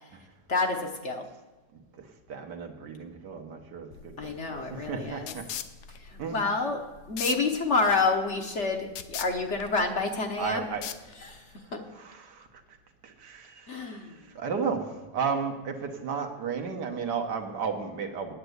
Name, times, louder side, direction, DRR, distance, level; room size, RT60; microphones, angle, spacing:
voice 1, 0.5-1.2 4.2-5.3 6.0-6.8 7.1-10.6 11.2-11.4 11.7-11.8 13.7-14.1, left 3 dB, 50° left, 3 dB, 1.1 m, -28 dB
voice 2, 2.0-5.5 6.2-6.4 10.4-10.8 11.2-11.3 11.9-12.5 13.0-13.8 14.2-18.3, right 5 dB, 75° right, 4 dB, 1.7 m, -34 dB
sound 1, 3.9-11.5, left 10 dB, 75° left, 1.2 m, -41 dB
9.5 x 8.0 x 7.9 m, 1.2 s
omnidirectional pair, 1.8 m